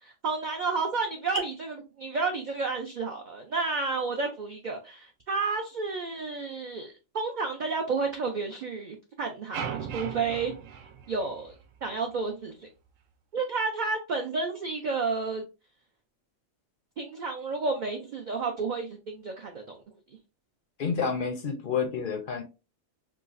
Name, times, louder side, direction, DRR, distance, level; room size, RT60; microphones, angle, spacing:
voice 1, 0.0-10.5 11.1-11.5 11.8-12.7 13.3-15.5 17.0-19.8, right 4 dB, 65° right, 4 dB, 0.4 m, -31 dB
sound 1, 9.5-11.8, right 7 dB, 80° right, 0.9 m, -38 dB
voice 2, 20.8-22.4, left 6 dB, 55° left, 4 dB, 0.6 m, -29 dB
4.6 x 2.0 x 2.4 m, 0.30 s
omnidirectional pair, 1.3 m